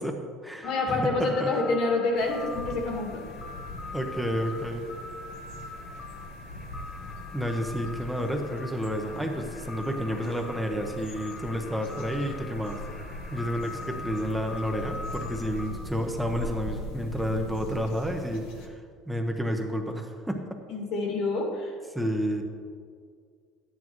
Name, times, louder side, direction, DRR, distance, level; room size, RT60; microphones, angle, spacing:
voice 1, 0.0-1.5 3.9-4.8 7.3-12.8 13.3-20.4 21.9-22.4, equal, 5° right, 3 dB, 0.9 m, -30 dB
voice 2, 0.6-3.2 20.7-21.7, left 3 dB, 65° left, 0 dB, 2.2 m, -27 dB
sound 1, 0.6-15.7, left 3 dB, 25° left, 1.6 m, -42 dB
sound 2, 2.1-18.7, left 1 dB, 85° left, 1.3 m, -41 dB
11.0 x 9.5 x 3.1 m, 2.1 s
supercardioid pair, 115°, 0 cm